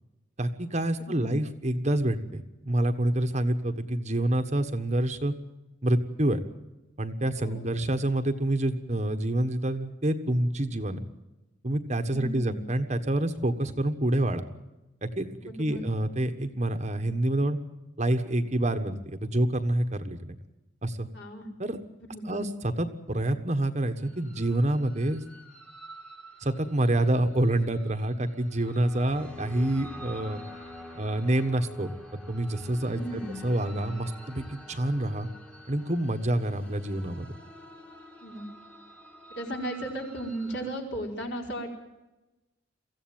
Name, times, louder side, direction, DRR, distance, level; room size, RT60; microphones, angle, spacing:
voice 1, 0.4-5.3 5.8-6.4 7.0-11.1 11.6-14.4 15.0-15.3 15.6-17.6 18.0-20.3 20.8-21.1 21.6-21.8 22.2-25.2 26.4-30.4 31.0-31.9 32.3-35.3 35.7-37.3, right 1 dB, 35° right, 8 dB, 1.4 m, -27 dB
voice 2, 12.1-12.6 15.4-15.8 21.1-21.5 22.0-22.4 32.9-33.4 38.2-38.5 39.3-41.8, right 1 dB, 60° left, 1 dB, 5.1 m, -36 dB
sound 1, 24.0-40.8, equal, 5° left, 1.8 m, -47 dB
24.0 x 15.5 x 9.0 m, 1.0 s
head